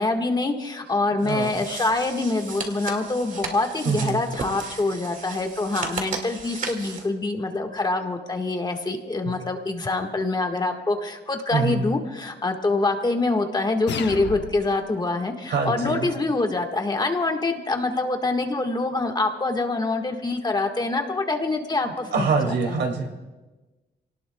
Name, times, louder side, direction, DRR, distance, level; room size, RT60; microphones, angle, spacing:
voice 1, 0.0-22.8, left 2 dB, 25° left, 4 dB, 1.5 m, -25 dB
sound 1, 1.2-7.1, right 4 dB, 45° right, 2.1 m, -35 dB
voice 2, 1.2-1.5 3.8-4.2 11.5-11.8 15.5-16.1 21.8-23.1, right 5 dB, 80° right, 3 dB, 2.4 m, -25 dB
sound 2, 13.9-14.9, left 8 dB, 85° left, 0.9 m, -33 dB
28.0 x 18.5 x 2.3 m, 1.2 s
wide cardioid pair, 130°, 18 cm